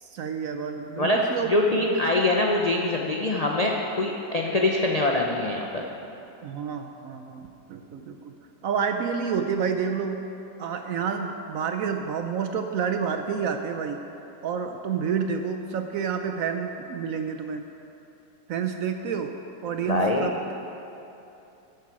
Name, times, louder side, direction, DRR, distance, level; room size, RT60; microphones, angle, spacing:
voice 1, 0.0-2.0 6.4-7.4 7.7-8.3 8.6-10.2 10.6-14.0 14.4-17.6 18.5-19.3 19.6-20.5, right 6 dB, 70° right, 5 dB, 0.8 m, -29 dB
voice 2, 1.0-5.8 19.9-20.3, left 2 dB, 80° left, -1 dB, 0.3 m, -24 dB
13.5 x 8.0 x 4.8 m, 2.9 s
omnidirectional pair, 1.9 m